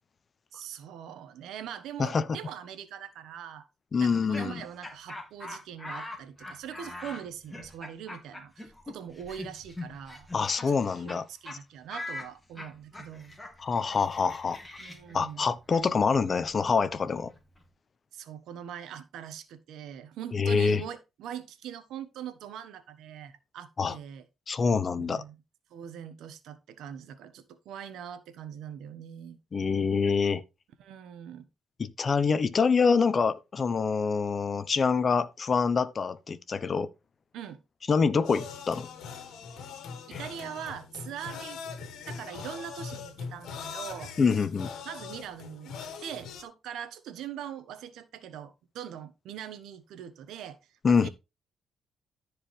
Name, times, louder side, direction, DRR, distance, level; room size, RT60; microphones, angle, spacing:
voice 1, 0.5-3.7 4.0-10.3 10.7-10.8 11.0-13.4 14.8-15.5 18.1-24.2 25.0-25.4 25.7-29.4 30.8-31.5 37.3-37.6 39.5-39.7 40.1-41.6 42.1-44.1 44.8-51.1, right 9 dB, 80° right, 1.3 m, -42 dB
voice 2, 3.9-4.6 10.3-11.2 13.6-14.6 15.1-17.3 20.3-20.8 23.8-24.0 24.5-25.2 29.5-30.4 31.8-36.9 37.9-38.9 40.1-40.2 44.2-44.7 50.8-51.1, left 5 dB, 40° left, 0.9 m, -26 dB
Laughter, 4.0-11.2 11.5-11.6 11.9-17.6, left 2 dB, 10° left, 2.9 m, -43 dB
sound 1, 38.2-46.4, left 5 dB, 80° left, 1.9 m, -41 dB
14.0 x 4.8 x 3.3 m
cardioid pair, 90°, 0 cm